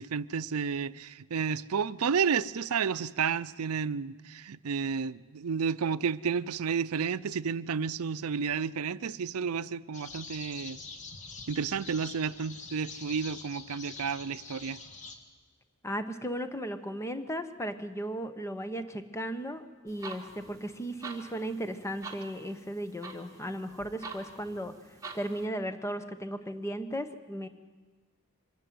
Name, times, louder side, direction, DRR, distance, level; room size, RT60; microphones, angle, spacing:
voice 1, 0.0-10.8 11.5-14.8, right 6 dB, 75° right, 0.5 m, -31 dB
sound 1, 9.9-15.2, left 4 dB, 35° left, 1.7 m, -45 dB
voice 2, 15.8-24.7 25.1-27.5, equal, 15° left, 1.1 m, -36 dB
sound 2, 19.9-25.5, right 4 dB, 15° right, 2.3 m, -47 dB
24.5 x 13.0 x 9.3 m
head